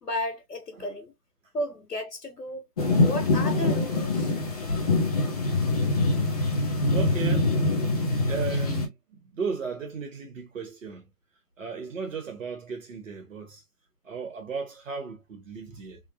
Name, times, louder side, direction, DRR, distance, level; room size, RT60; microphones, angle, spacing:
voice 1, 0.0-1.1 1.5-2.7 3.0-4.3, left 1 dB, 90° left, 1.2 m, -33 dB
sound 1, 2.8-8.9, left 2 dB, 25° left, 0.6 m, -24 dB
voice 2, 6.9-7.5 8.0-11.1 11.6-13.6 14.0-16.0, right 5 dB, 55° right, 1.3 m, -36 dB
3.6 x 2.0 x 2.4 m
figure-of-eight pair, 145°, 47 cm